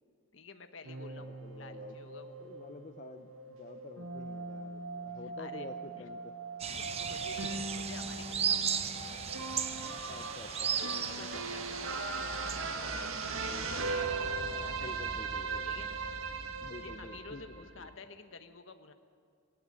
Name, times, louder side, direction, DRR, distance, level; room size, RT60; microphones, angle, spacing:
voice 1, 0.3-2.4 5.1-6.0 6.7-8.8 10.7-13.5 13.8-14.1 14.3-14.9 15.6-15.9 16.8-18.9, left 4 dB, 65° left, 8 dB, 1.3 m, -51 dB
sound 1, 0.8-17.9, right 4 dB, 85° right, 1.7 m, -39 dB
voice 2, 1.2-2.0 2.4-6.3 10.0-11.4 14.7-15.8 16.6-17.9, left 2 dB, 40° left, 7 dB, 0.7 m, -49 dB
sound 2, 6.6-12.6, right 7 dB, 30° right, 0.8 m, -36 dB
20.0 x 17.5 x 8.9 m, 2.1 s
head